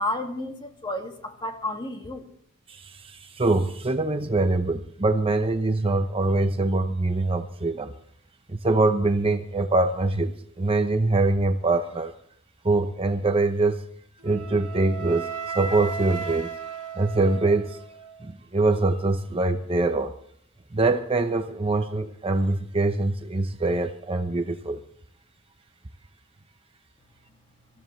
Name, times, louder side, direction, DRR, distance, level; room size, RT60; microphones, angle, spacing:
voice 1, 0.0-2.2, left 1 dB, 20° left, 2.1 m, -31 dB
voice 2, 2.7-7.9 8.5-10.3 10.6-12.1 12.6-13.8 14.2-16.5 16.9-17.8 18.2-20.1 20.7-24.8, right 2 dB, 25° right, 0.7 m, -24 dB
Wind instrument woodwind instrument, 14.2-18.3, right 6 dB, 80° right, 2.0 m, -35 dB
25.0 x 14.5 x 3.2 m
head